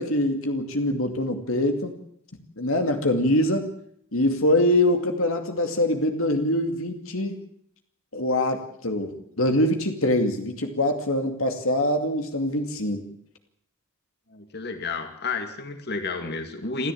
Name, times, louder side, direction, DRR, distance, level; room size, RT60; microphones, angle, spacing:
voice 1, 0.0-1.9 2.6-3.6 4.1-7.4 8.1-13.1, left 1 dB, 75° left, 5 dB, 2.5 m, -24 dB
voice 2, 14.3-16.9, left 4 dB, 50° left, 6 dB, 2.6 m, -31 dB
27.0 x 14.0 x 8.7 m, 0.69 s
head